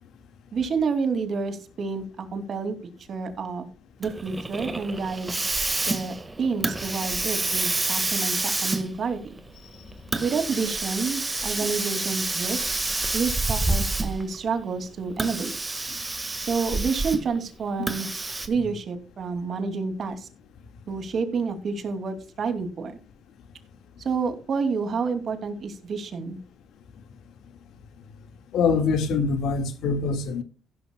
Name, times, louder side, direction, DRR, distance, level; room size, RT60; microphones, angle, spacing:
voice 1, 0.5-2.8 3.1-3.7 4.0-5.4 5.9-9.4 10.2-12.6 13.1-15.5 16.4-20.3 20.9-23.0 24.0-26.4, right 5 dB, 55° right, 2.7 m, -29 dB
Hiss, 4.0-14.4 15.1-17.4 17.9-18.5, right 2 dB, 20° right, 1.7 m, -28 dB
voice 2, 28.5-30.4, left 5 dB, 80° left, 1.9 m, -24 dB
15.5 x 12.5 x 2.3 m
cardioid pair, 90°, 0 cm